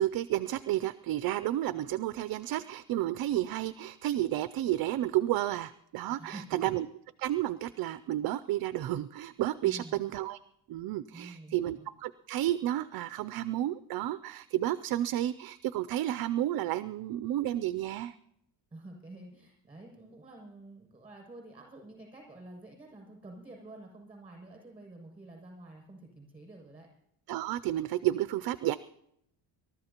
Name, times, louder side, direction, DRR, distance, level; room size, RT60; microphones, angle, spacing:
voice 1, 0.0-6.9 7.2-10.4 10.7-18.1 27.3-28.8, right 13 dB, 50° right, 14 dB, 0.5 m, -31 dB
voice 2, 6.1-6.7 9.6-10.0 11.1-11.9 18.7-26.9, right 2 dB, 10° right, 2 dB, 6.8 m, -49 dB
27.0 x 13.5 x 2.9 m, 0.76 s
cardioid pair, 155°, 47 cm